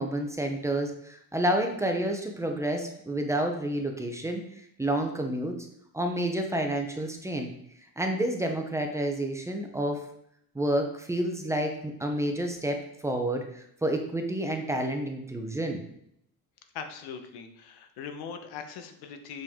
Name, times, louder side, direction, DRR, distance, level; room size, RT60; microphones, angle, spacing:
voice 1, 0.0-5.6 5.9-7.5 8.0-10.0 10.5-15.8, right 1 dB, 10° right, 3 dB, 0.7 m, -29 dB
voice 2, 16.7-19.4, left 6 dB, 85° left, 7 dB, 1.1 m, -40 dB
7.5 x 5.3 x 3.6 m, 0.73 s
cardioid pair, 160°, 37 cm